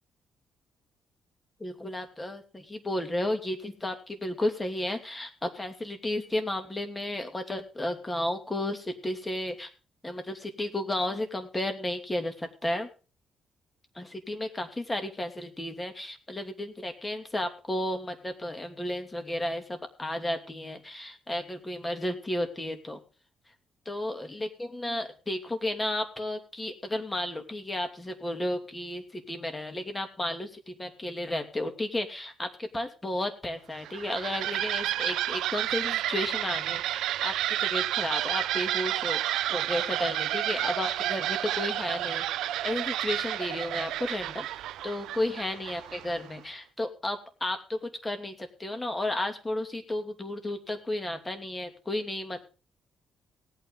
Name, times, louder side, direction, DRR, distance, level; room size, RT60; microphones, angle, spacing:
voice 1, 1.6-9.7 10.0-12.9 13.9-23.0 23.9-37.3 37.6-52.4, left 1 dB, 20° left, 6 dB, 2.7 m, -33 dB
sound 1, 33.7-46.3, right 13 dB, 85° right, 0.6 m, -31 dB
18.5 x 9.0 x 3.9 m, 0.34 s
cardioid pair, 90°, 0 cm